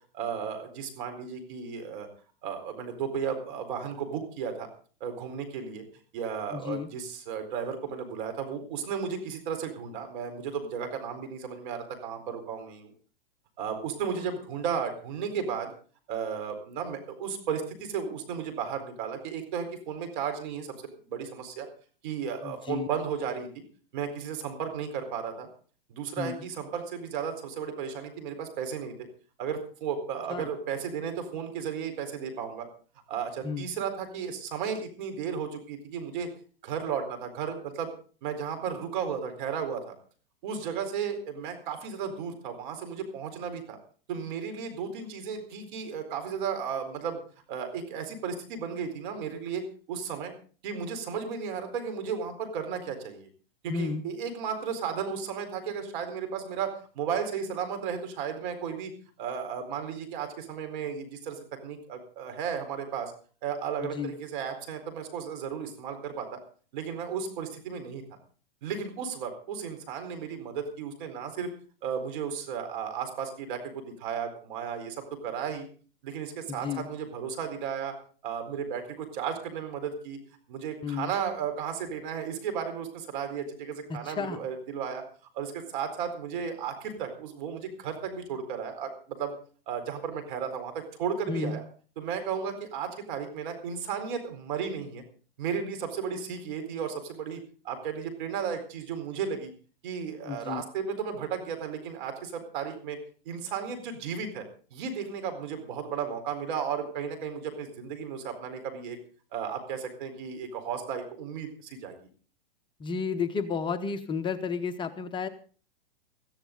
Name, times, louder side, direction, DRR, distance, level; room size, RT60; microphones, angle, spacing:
voice 1, 0.1-2.1 2.4-4.7 5.0-5.8 6.1-12.9 13.6-15.7 16.1-21.7 22.0-23.6 23.9-25.5 25.9-28.9 29.4-32.7 33.1-36.3 36.6-37.9 38.2-40.0 40.4-43.8 44.1-47.2 47.5-50.3 50.6-53.3 53.6-58.9 59.2-63.1 63.4-66.4 66.7-68.0 68.6-71.5 71.8-75.6 76.0-77.9 78.2-80.2 80.5-85.0 85.3-89.3 89.7-91.6 92.0-95.0 95.4-99.5 99.8-103.0 103.3-104.5 104.7-109.0 109.3-111.9, right 7 dB, 55° right, 7 dB, 4.2 m, -34 dB
voice 2, 6.5-6.9 22.4-22.9 26.2-26.4 30.3-30.5 33.4-33.7 53.7-54.0 63.8-64.1 76.5-76.9 80.8-81.1 83.9-84.4 91.3-91.6 100.2-100.6 112.8-115.3, left 5 dB, 15° left, 8 dB, 0.8 m, -32 dB
18.0 x 15.0 x 3.8 m, 0.40 s
hypercardioid pair, 130°, 29 cm